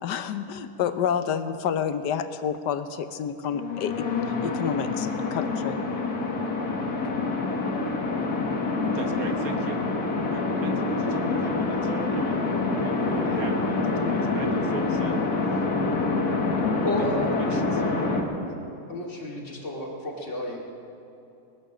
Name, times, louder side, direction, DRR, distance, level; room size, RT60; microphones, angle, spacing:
voice 1, 0.0-4.1 4.4-5.8, left 8 dB, 75° left, 10 dB, 1.4 m, -29 dB
sound 1, 3.5-18.2, left 3 dB, 60° left, 2.0 m, -26 dB
voice 2, 8.9-9.8 10.3-15.2 16.6-17.0 17.5-18.1, right 3 dB, 60° right, 4 dB, 1.5 m, -38 dB
voice 3, 16.8-17.3 17.7-18.1 18.5-18.6 18.9-20.6, left 1 dB, 45° left, -2 dB, 2.6 m, -31 dB
20.0 x 13.5 x 5.1 m, 2.9 s
omnidirectional pair, 1.8 m